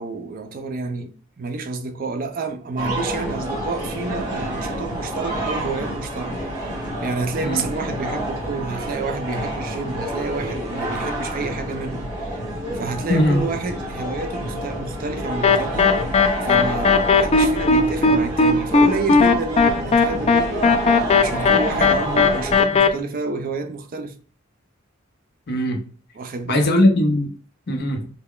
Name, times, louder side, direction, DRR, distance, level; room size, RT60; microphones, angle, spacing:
voice 1, 0.0-12.4 12.7-16.2 16.4-20.5 21.2-24.1 26.1-26.7, right 3 dB, 45° right, 0.4 m, -29 dB
sound 1, 2.8-22.6, right 1 dB, 20° right, 1.7 m, -28 dB
voice 2, 13.1-13.4 25.5-25.8 26.5-27.3 27.7-28.0, left 1 dB, 50° left, 0.7 m, -19 dB
sound 2, 15.4-22.9, left 4 dB, 30° left, 0.3 m, -17 dB
3.3 x 2.2 x 3.6 m
head